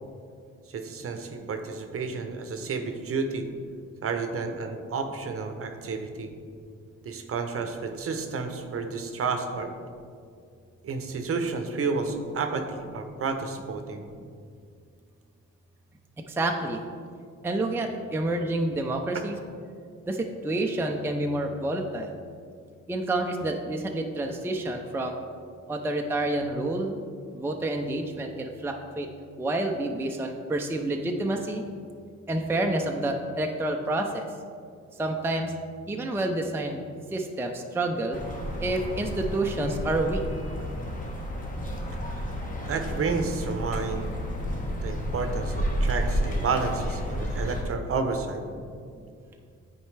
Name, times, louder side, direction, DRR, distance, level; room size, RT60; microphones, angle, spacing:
voice 1, 0.7-3.5 4.0-6.3 7.0-9.7 10.8-14.0 42.7-44.1 44.8-48.4, right 4 dB, 50° right, 6 dB, 0.8 m, -31 dB
voice 2, 16.3-16.8 17.4-19.3 20.1-22.1 22.9-25.2 25.7-27.0 27.3-29.1 29.4-31.6 32.3-34.2 35.0-35.5 35.9-36.8 37.1-38.2 38.6-40.2, right 2 dB, 10° right, 3 dB, 0.5 m, -28 dB
sound 1, 38.1-47.6, equal, 25° left, 1.2 m, -31 dB
9.1 x 4.4 x 3.3 m, 2.3 s
cardioid pair, 90°, 30 cm